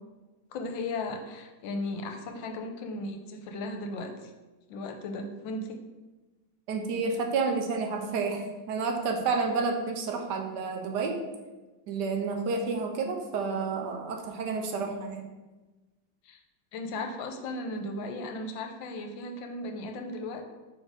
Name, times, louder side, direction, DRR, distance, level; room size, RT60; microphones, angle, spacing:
voice 1, 0.5-4.3 4.7-5.8 16.2-16.4 16.7-20.4, left 2 dB, 75° left, 5 dB, 1.4 m, -36 dB
voice 2, 6.7-11.2 11.9-15.2, right 4 dB, 65° right, 3 dB, 1.2 m, -30 dB
4.8 x 4.3 x 4.9 m, 1.2 s
omnidirectional pair, 2.2 m